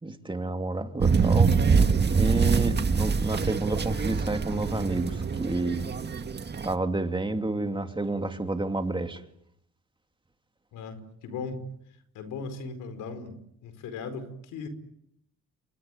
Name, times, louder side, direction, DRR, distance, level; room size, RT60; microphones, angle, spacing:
voice 1, 0.0-1.9 2.1-5.9 6.6-9.2, right 2 dB, 15° right, 6 dB, 2.8 m, -30 dB
sound 1, 1.0-6.7, right 5 dB, 35° right, 1.9 m, -24 dB
voice 2, 10.7-11.6 12.1-13.3 13.6-14.7, left 4 dB, 90° left, 10 dB, 4.9 m, -37 dB
28.5 x 22.5 x 9.2 m, 0.76 s
cardioid pair, 90°, 30 cm